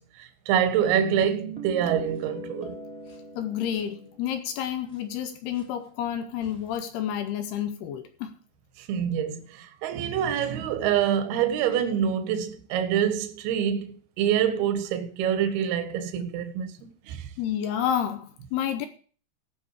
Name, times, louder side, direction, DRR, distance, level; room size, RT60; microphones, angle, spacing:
voice 1, 0.0-2.8 8.8-17.3, right 9 dB, 70° right, 2.9 m, -26 dB
sound 1, 0.9-4.5 4.9-5.0 5.5-5.6 6.4-6.8, right 2 dB, ahead, 3.0 m, -39 dB
voice 2, 3.4-8.3 17.4-18.9, left 9 dB, 75° left, 2.7 m, -30 dB
17.5 x 6.2 x 4.7 m
omnidirectional pair, 5.1 m